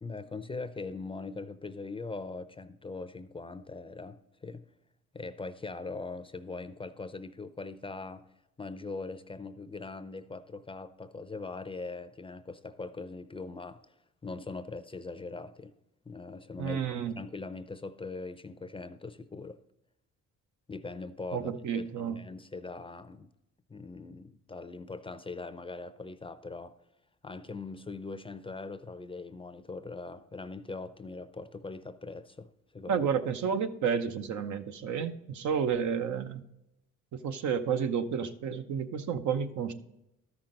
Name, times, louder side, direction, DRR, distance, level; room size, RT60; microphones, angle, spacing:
voice 1, 0.0-4.7 5.1-8.3 8.6-13.9 14.2-15.7 16.1-16.8 17.2-19.6 20.7-23.3 23.7-26.8 27.2-33.1, left 3 dB, 20° left, 0.5 m, -41 dB
voice 2, 16.6-17.1 21.3-22.2 32.9-36.4 37.1-39.7, right 7 dB, 70° right, 0.8 m, -31 dB
13.0 x 6.0 x 3.8 m
cardioid pair, 90°, 30 cm